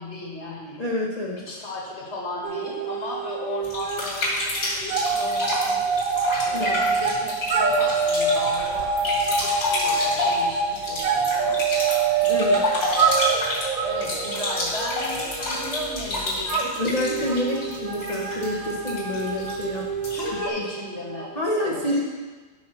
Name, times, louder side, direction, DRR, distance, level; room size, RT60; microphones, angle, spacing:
voice 1, 0.0-0.8 1.3-6.0 6.4-12.0 12.5-13.5 13.8-16.8 20.1-21.3 21.6-22.0, left 2 dB, 40° left, -2 dB, 1.7 m, -35 dB
voice 2, 0.8-1.4 6.5-6.8 12.2-12.6 16.8-19.9 21.3-22.0, left 1 dB, 55° left, -3 dB, 0.4 m, -27 dB
sound 1, 2.4-4.1 4.3-21.4, right 4 dB, 60° right, 1.0 m, -26 dB
sound 2, 3.6-20.5, left 2 dB, 80° left, 3.3 m, -30 dB
12.5 x 5.7 x 3.0 m, 1.3 s
omnidirectional pair, 2.0 m